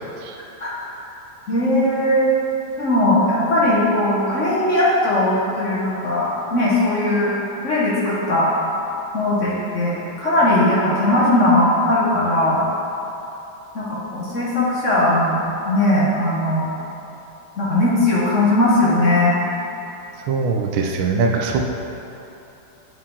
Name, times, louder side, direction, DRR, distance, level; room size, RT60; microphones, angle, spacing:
voice 1, 1.5-2.3 2.8-7.3 7.6-8.5 9.1-12.6 13.7-15.4 15.6-16.7 17.6-19.4, left 1 dB, 50° left, -7 dB, 1.1 m, -19 dB
voice 2, 20.3-21.6, right 4 dB, 90° right, 2 dB, 1.5 m, -21 dB
8.6 x 4.7 x 3.6 m, 3.0 s
omnidirectional pair, 2.2 m